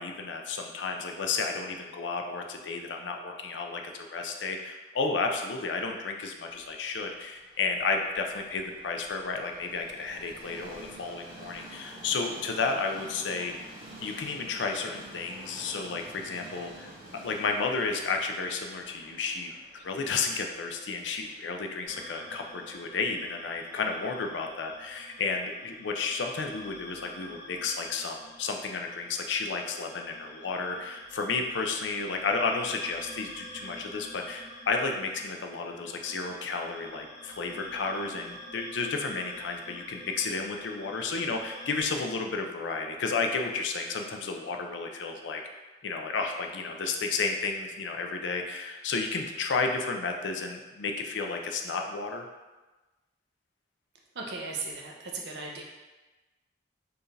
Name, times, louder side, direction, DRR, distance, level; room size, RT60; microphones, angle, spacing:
voice 1, 0.0-13.7 14.0-16.9 17.2-45.4 45.8-52.2, left 4 dB, 80° left, 3 dB, 0.5 m, -32 dB
Train, 6.6-24.6, right 1 dB, 30° right, 1.0 m, -50 dB
sound 1, 21.9-41.8, left 1 dB, 35° left, 1.3 m, -48 dB
voice 2, 54.2-55.6, right 3 dB, 65° right, -1 dB, 0.6 m, -37 dB
4.6 x 2.5 x 3.2 m, 1.2 s
head